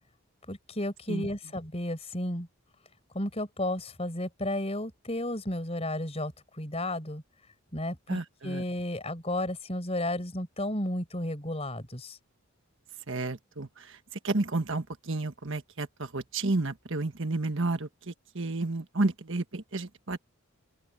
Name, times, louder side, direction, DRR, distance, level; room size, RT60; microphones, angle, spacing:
voice 1, 0.5-2.5 3.1-6.3 6.6-7.2 7.7-12.2, left 1 dB, 30° left, 5.1 m, -33 dB
voice 2, 8.1-8.6 13.1-13.7 14.2-20.2, right 2 dB, 55° right, 1.5 m, -31 dB
open air
head